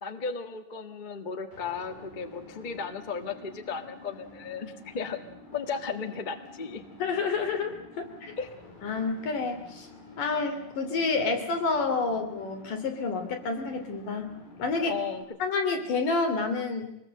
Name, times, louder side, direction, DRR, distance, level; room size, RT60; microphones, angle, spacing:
voice 1, 0.0-5.2 5.5-6.8 8.4-8.5 14.9-15.2, left 5 dB, 45° left, 7 dB, 0.6 m, -35 dB
sound 1, 1.5-15.2, left 2 dB, 90° left, 8.2 m, -49 dB
voice 2, 7.0-8.1 8.8-9.9 10.2-14.3 14.6-15.0 15.4-16.9, left 4 dB, 70° left, 5 dB, 4.6 m, -29 dB
25.0 x 19.5 x 7.8 m, 0.78 s
omnidirectional pair, 4.0 m